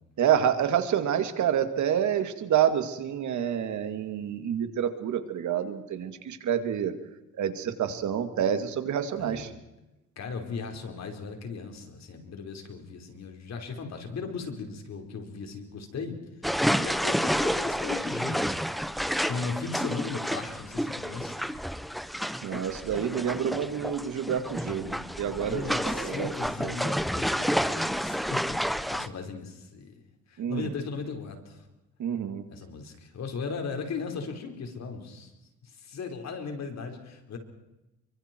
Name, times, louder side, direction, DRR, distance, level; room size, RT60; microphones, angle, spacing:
voice 1, 0.2-6.9 7.4-9.5 22.4-25.6 25.9-26.3 26.6-26.7 30.4-30.7 32.0-32.4, right 9 dB, 70° right, 8 dB, 2.4 m, -28 dB
voice 2, 9.2-9.5 10.2-16.2 16.7-18.4 19.1-21.5 24.6-29.9 30.3-31.6 32.5-35.3 35.6-37.4, left 5 dB, 60° left, 4 dB, 4.9 m, -37 dB
sound 1, 16.4-29.1, equal, ahead, 1.1 m, -30 dB
29.0 x 24.0 x 4.7 m, 0.99 s
cardioid pair, 90°, 30 cm